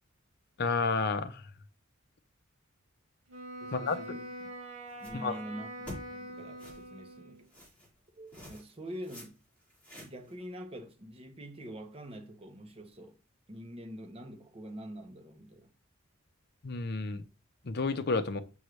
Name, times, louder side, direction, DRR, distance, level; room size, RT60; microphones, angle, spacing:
voice 1, 0.6-1.3 3.7-4.0 5.1-5.3 16.6-17.2 17.6-18.4, left 4 dB, 55° left, 0.7 m, -30 dB
Wind instrument woodwind instrument, 3.3-7.4, right 1 dB, 75° right, 2.3 m, -44 dB
voice 2, 3.6-4.5 5.0-7.5 8.2-9.4 10.0-13.2 13.5-15.7, equal, 30° right, 1.0 m, -45 dB
sound 1, 4.9-5.3 5.8-6.0 6.6-6.9 7.5-7.9 8.3-8.7 9.0-9.3 9.6-10.3, left 1 dB, 5° left, 4.0 m, -47 dB
6.5 x 5.4 x 3.2 m
head